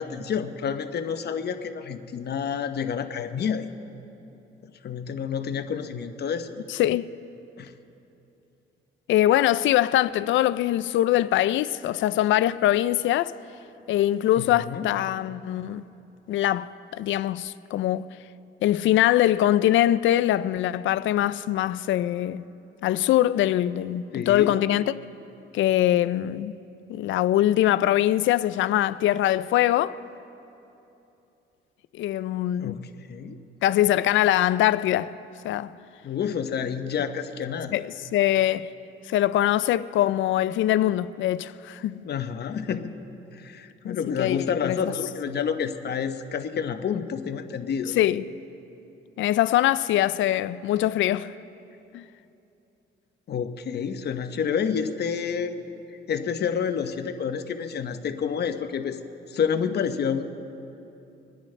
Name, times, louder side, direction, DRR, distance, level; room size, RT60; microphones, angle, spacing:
voice 1, 0.0-3.7 4.6-6.6 7.6-7.7 14.4-14.9 24.1-24.6 32.6-32.8 33.1-33.4 36.0-37.7 42.0-42.9 43.3-47.9 53.3-55.6 56.1-59.0 59.3-60.2, left 7 dB, 55° left, 0.9 m, -29 dB
voice 2, 6.7-7.1 9.1-13.3 13.9-15.8 16.3-18.1 18.6-22.4 22.8-24.9 25.5-26.5 26.9-30.0 31.9-32.8 33.6-35.1 35.4-35.7 37.7-38.7 39.1-42.0 43.8-44.8 48.0-48.2 49.2-51.3 51.9-52.0, left 13 dB, 75° left, 0.4 m, -23 dB
26.5 x 10.0 x 3.3 m
cardioid pair, 90°, 20 cm